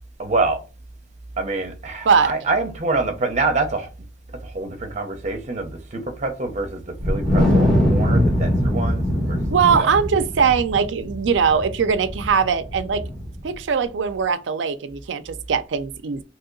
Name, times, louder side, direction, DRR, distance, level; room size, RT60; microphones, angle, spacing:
voice 1, 0.2-0.6 1.4-3.9 4.4-9.4 9.7-9.9, right 3 dB, 40° right, 0.8 m, -26 dB
Wind, 7.0-13.5, equal, 5° left, 1.4 m, -22 dB
voice 2, 9.5-13.0 13.4-16.2, right 6 dB, 75° right, 0.4 m, -20 dB
2.9 x 2.8 x 3.8 m
head